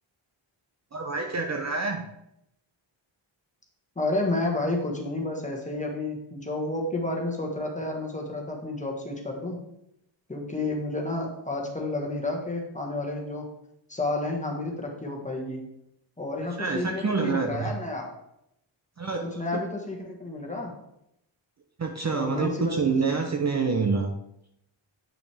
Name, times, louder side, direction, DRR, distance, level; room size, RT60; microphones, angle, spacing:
voice 1, 0.9-2.1 16.6-17.8 19.0-19.6 21.8-24.2, right 4 dB, 35° right, 4 dB, 0.6 m, -27 dB
voice 2, 3.9-9.6 10.3-13.5 13.9-15.6 16.2-18.1 19.3-20.7 22.1-22.8, left 2 dB, 15° left, 1 dB, 1.4 m, -30 dB
8.6 x 5.9 x 3.4 m, 0.80 s
wide cardioid pair, 150°, 49 cm